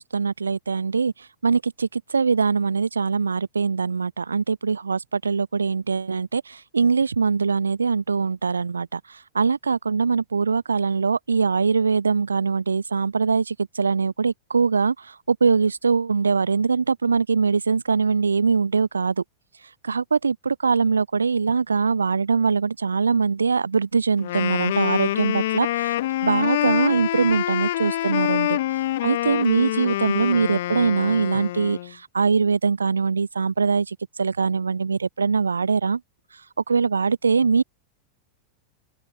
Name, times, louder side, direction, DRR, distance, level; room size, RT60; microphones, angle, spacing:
voice 1, 0.0-19.2 19.8-26.0 26.2-28.6 29.0-36.0 36.7-37.6, right 5 dB, 75° right, 0.7 m, -22 dB
Wind instrument woodwind instrument, 24.2-31.9, left 15 dB, 55° left, 1.5 m, -26 dB
open air
figure-of-eight pair, 90°, 0 cm